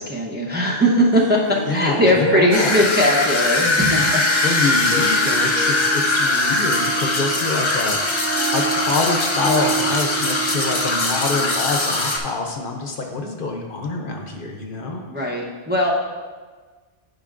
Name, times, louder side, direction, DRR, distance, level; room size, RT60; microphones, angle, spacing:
voice 1, 0.0-4.4 15.1-15.9, equal, 10° right, -4 dB, 0.7 m, -19 dB
Harp, 1.1-12.2, right 4 dB, 65° right, 1.3 m, -31 dB
voice 2, 1.7-2.8 4.0-15.0, left 3 dB, 60° left, 3 dB, 0.9 m, -26 dB
sound 1, 2.5-12.2, left 2 dB, 30° left, 0.7 m, -21 dB
10.5 x 5.3 x 2.5 m, 1.4 s
omnidirectional pair, 1.0 m